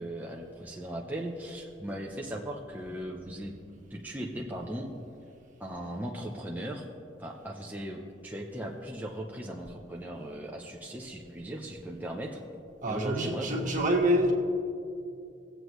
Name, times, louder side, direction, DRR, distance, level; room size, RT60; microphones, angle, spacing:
voice 1, 0.0-3.5 3.9-4.9 5.6-6.9 7.2-12.4 12.9-13.7, right 1 dB, 10° right, -2 dB, 0.6 m, -38 dB
voice 2, 12.8-14.3, equal, 45° right, 0 dB, 1.5 m, -26 dB
20.0 x 7.9 x 3.1 m, 2.6 s
head